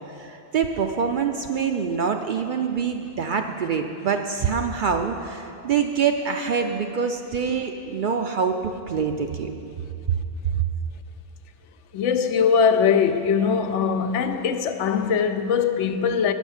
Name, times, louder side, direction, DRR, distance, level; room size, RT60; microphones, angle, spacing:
voice 1, 0.1-9.5, right 6 dB, 60° right, 0.5 m, -25 dB
voice 2, 11.9-16.3, left 6 dB, 85° left, 0.9 m, -21 dB
9.8 x 6.2 x 7.1 m
omnidirectional pair, 1.2 m